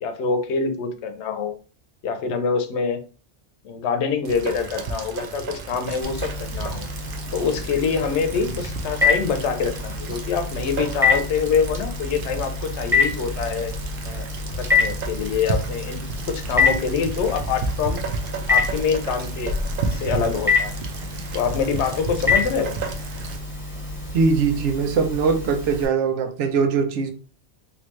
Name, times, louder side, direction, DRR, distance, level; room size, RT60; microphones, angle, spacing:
voice 1, 0.0-1.6 2.0-3.0 3.6-6.9 7.3-13.8 14.1-14.3 14.6-18.0 18.5-19.6 19.9-20.8 21.3-22.8, left 6 dB, 80° left, 7 dB, 0.9 m, -25 dB
Rain, 4.2-23.4, right 4 dB, 60° right, 0.7 m, -33 dB
Telephone, 6.0-25.8, left 4 dB, 5° right, 1.2 m, -26 dB
voice 2, 24.1-27.1, right 5 dB, 90° right, 7 dB, 0.9 m, -21 dB
3.4 x 2.6 x 3.1 m, 0.37 s
omnidirectional pair, 1.2 m